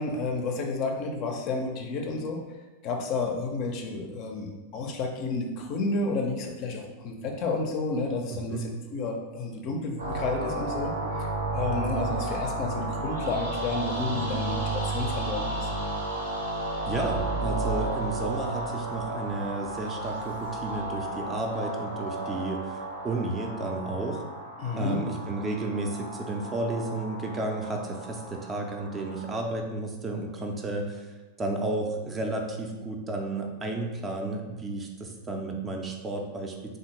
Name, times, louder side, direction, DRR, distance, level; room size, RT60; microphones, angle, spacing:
voice 1, 0.0-2.4 2.8-15.7 24.6-25.0, left 3 dB, 40° left, 2 dB, 0.4 m, -31 dB
voice 2, 8.3-8.7 16.9-24.2 24.8-31.1 31.4-36.8, right 2 dB, 20° right, 2 dB, 0.4 m, -32 dB
sound 1, 10.0-29.3, right 2 dB, 65° right, 0.6 m, -33 dB
3.3 x 2.2 x 3.1 m, 1.2 s
figure-of-eight pair, 90°, 0 cm